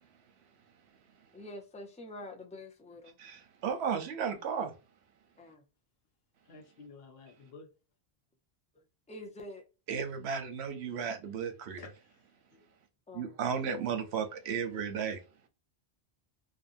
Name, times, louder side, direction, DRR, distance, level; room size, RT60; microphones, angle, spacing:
voice 1, 1.3-3.2 5.4-5.6 9.1-9.6 13.1-13.4, left 1 dB, 10° left, 0.3 m, -46 dB
voice 2, 3.2-4.7 9.9-11.8 13.1-15.2, right 7 dB, 80° right, 0.9 m, -34 dB
voice 3, 6.4-7.7 11.7-12.3 12.5-12.7, left 4 dB, 65° left, 1.0 m, -52 dB
2.6 x 2.5 x 2.5 m
omnidirectional pair, 1.1 m